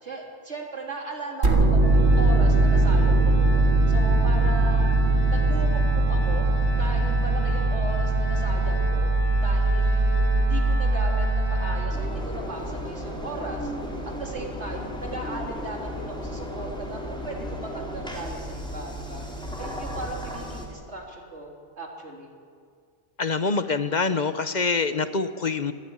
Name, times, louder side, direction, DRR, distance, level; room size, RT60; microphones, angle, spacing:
voice 1, 0.0-5.0 5.3-6.4 6.8-9.1 9.4-13.7 14.0-19.3 19.6-22.3, right 1 dB, 60° right, 0 dB, 3.8 m, -37 dB
sound 1, 1.4-12.4, right 2 dB, 90° right, 2.7 m, -21 dB
Organ, 1.8-12.6, right 2 dB, 20° left, 4.7 m, -36 dB
Engine, 11.9-20.7, equal, 5° left, 3.7 m, -35 dB
voice 2, 23.2-25.7, left 4 dB, 40° left, 11 dB, 0.9 m, -25 dB
25.5 x 14.0 x 9.6 m, 2.1 s
omnidirectional pair, 1.3 m